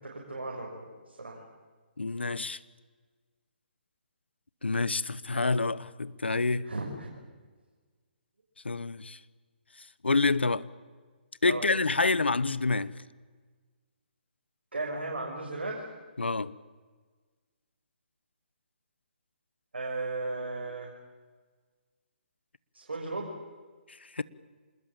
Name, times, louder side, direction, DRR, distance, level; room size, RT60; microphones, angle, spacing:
voice 1, 0.0-1.4 6.6-7.1 11.5-11.6 14.7-15.8 19.7-20.9 22.7-23.3, right 2 dB, 80° right, 6.4 m, -35 dB
voice 2, 2.0-2.6 4.6-6.7 8.6-9.2 10.0-10.6 11.4-12.9 16.2-16.5 24.1-24.2, left 3 dB, 85° left, 1.1 m, -27 dB
26.5 x 21.0 x 9.0 m
figure-of-eight pair, 140°, 6 cm